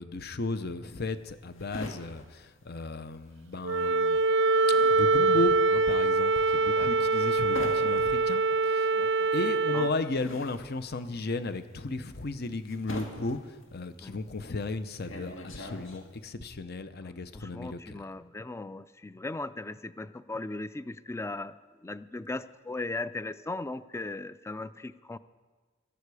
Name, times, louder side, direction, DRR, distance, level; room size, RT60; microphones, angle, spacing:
voice 1, 0.0-4.2 4.9-8.9 9.3-18.1, left 2 dB, 55° left, 11 dB, 0.8 m, -35 dB
sound 1, 0.9-3.4 3.7-16.3, left 1 dB, 85° left, 1.9 m, -44 dB
Wind instrument woodwind instrument, 3.6-9.9, right 3 dB, 65° right, 0.5 m, -24 dB
voice 2, 6.7-7.1 8.9-9.3 9.7-9.9 14.0-14.2 17.0-21.5 21.8-25.2, left 2 dB, 15° left, 15 dB, 0.4 m, -38 dB
16.5 x 13.5 x 4.8 m, 1.4 s
head